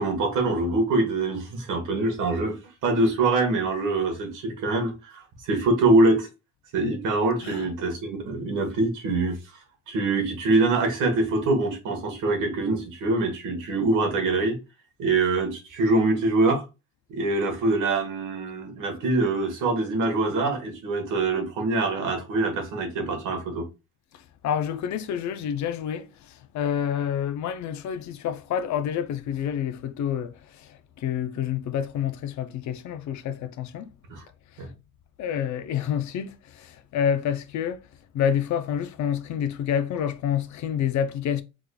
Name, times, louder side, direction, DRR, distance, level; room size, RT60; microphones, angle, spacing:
voice 1, 0.0-2.6 2.8-6.3 6.7-9.4 9.9-14.6 15.0-16.6 17.1-23.7 34.1-34.2 34.6-34.7, right 2 dB, 90° right, 1.3 m, -24 dB
voice 2, 24.4-26.1 26.5-30.7 31.0-33.9 35.2-37.8 38.1-41.4, left 9 dB, 70° left, 0.5 m, -28 dB
3.6 x 3.3 x 2.2 m
cardioid pair, 90°, 30 cm